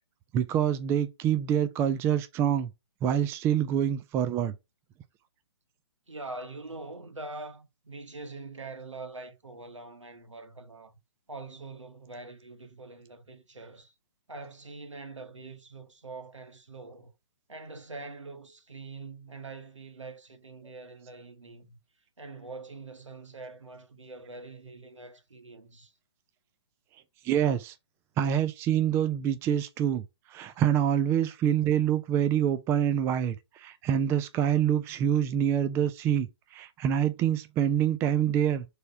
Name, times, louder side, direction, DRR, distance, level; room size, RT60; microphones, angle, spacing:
voice 1, 0.3-2.7 3.0-4.5 27.2-27.7 28.2-30.0 30.3-38.7, right 9 dB, 15° right, 0.5 m, -26 dB
voice 2, 6.1-11.0 11.3-13.9 14.3-17.1 17.5-21.8 22.2-25.9, right 3 dB, 90° right, 1.6 m, -44 dB
6.6 x 3.6 x 5.6 m
figure-of-eight pair, 135°, 15 cm